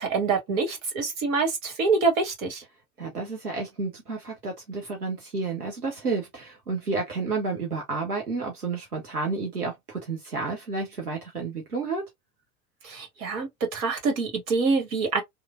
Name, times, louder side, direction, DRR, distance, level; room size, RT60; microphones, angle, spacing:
voice 1, 0.0-2.6 12.8-15.2, right 4 dB, 60° right, 1.2 m, -26 dB
voice 2, 3.0-12.0, right 4 dB, 85° right, 0.8 m, -31 dB
3.1 x 2.1 x 2.3 m
figure-of-eight pair, 75°, 45 cm